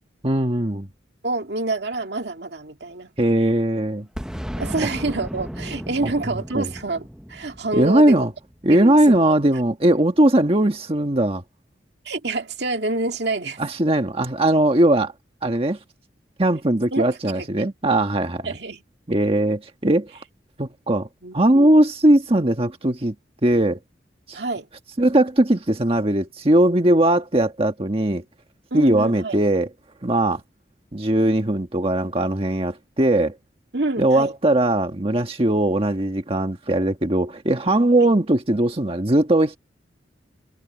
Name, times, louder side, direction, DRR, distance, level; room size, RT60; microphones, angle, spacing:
voice 1, 0.2-0.9 3.2-4.1 6.0-6.1 6.5-6.7 7.7-8.3 8.6-11.4 13.6-15.1 15.4-15.8 16.4-18.5 19.1-20.1 20.6-21.1 21.3-23.1 23.4-23.8 24.3-24.4 25.0-28.2 28.7-29.7 30.0-30.4 30.9-33.3 34.0-39.6, right 1 dB, 30° right, 1.5 m, -19 dB
voice 2, 1.2-3.1 4.6-8.2 8.7-9.4 12.0-13.6 16.9-17.1 17.4-17.7 18.4-18.8 21.2-21.8 24.3-24.7 28.7-29.4 33.7-34.3 38.0-38.1, right 2 dB, 65° right, 2.3 m, -27 dB
Boom, 4.2-8.8, equal, 5° right, 0.7 m, -34 dB
head